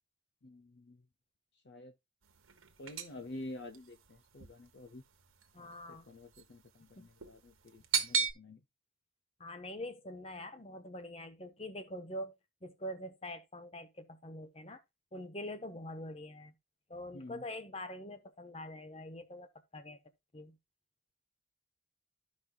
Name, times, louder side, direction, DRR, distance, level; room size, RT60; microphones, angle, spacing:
voice 1, 0.4-1.1 1.6-1.9 2.8-5.0 5.6-8.6 17.1-17.4, left 1 dB, 55° left, 0.6 m, -49 dB
sound 1, 2.2-8.3, right 6 dB, 85° right, 1.2 m, -37 dB
voice 2, 5.5-6.0 7.0-7.1 9.4-12.3 12.6-14.8 15.1-16.5 16.9-19.5 19.7-20.0 20.3-20.6, left 1 dB, 30° left, 1.0 m, -44 dB
13.5 x 5.3 x 2.3 m
head